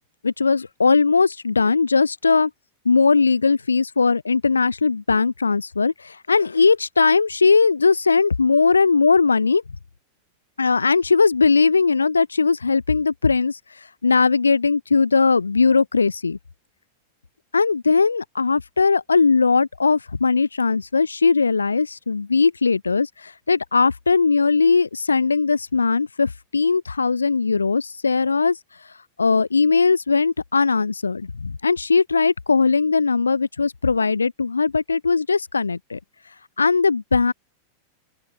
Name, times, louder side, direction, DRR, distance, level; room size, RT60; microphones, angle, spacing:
voice 1, 0.2-2.5 2.8-9.6 10.6-16.4 17.5-28.9 29.2-36.0 36.6-37.3, left 4 dB, 75° left, 2.6 m, -19 dB
open air
figure-of-eight pair, 90°, 0 cm